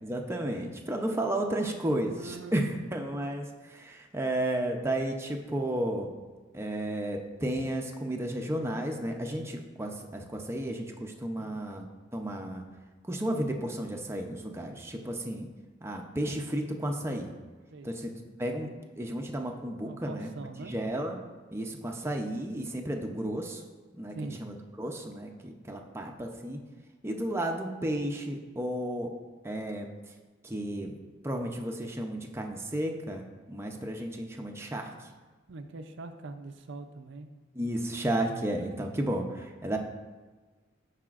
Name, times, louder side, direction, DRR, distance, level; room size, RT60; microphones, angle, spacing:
voice 1, 0.0-6.1 6.5-11.9 12.1-12.6 13.1-15.5 15.8-17.3 17.8-18.1 18.4-18.7 19.0-20.3 20.7-21.2 21.5-23.6 23.9-26.6 27.0-29.1 29.4-29.9 30.4-30.9 31.2-34.9 37.5-39.8, right 1 dB, 15° right, 2 dB, 0.6 m, -33 dB
voice 2, 0.9-1.4 2.2-2.6 11.4-11.6 17.7-17.9 19.8-20.7 24.1-24.4 35.5-37.3, right 3 dB, 65° right, 7 dB, 0.5 m, -43 dB
14.5 x 4.9 x 2.5 m, 1.3 s
head